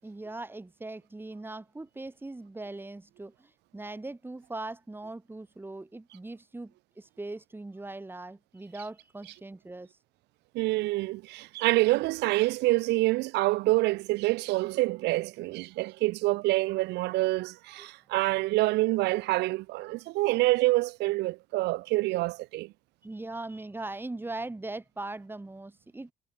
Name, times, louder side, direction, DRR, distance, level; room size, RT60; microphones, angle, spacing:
voice 1, 0.0-9.9 17.8-17.9 23.0-26.1, right 2 dB, 10° right, 6.7 m, -40 dB
voice 2, 10.5-22.7, right 20 dB, 90° right, 4.4 m, -27 dB
cardioid pair, 110°, 17 cm